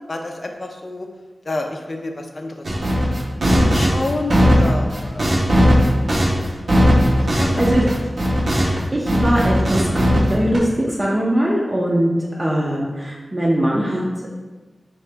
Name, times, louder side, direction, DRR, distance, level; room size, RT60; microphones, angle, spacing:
voice 1, 0.1-1.1 1.4-2.8 3.5-5.4 7.2-7.6 12.3-12.8, left 2 dB, 50° left, 3 dB, 0.5 m, -29 dB
sound 1, 2.6-8.8 9.1-10.6, equal, 80° right, 0.8 m, -17 dB
voice 2, 7.3-7.8 8.6-12.1 12.4-14.3, right 1 dB, 30° right, -5 dB, 0.5 m, -21 dB
3.8 x 2.8 x 3.3 m, 1.3 s
wide cardioid pair, 75°, 0 cm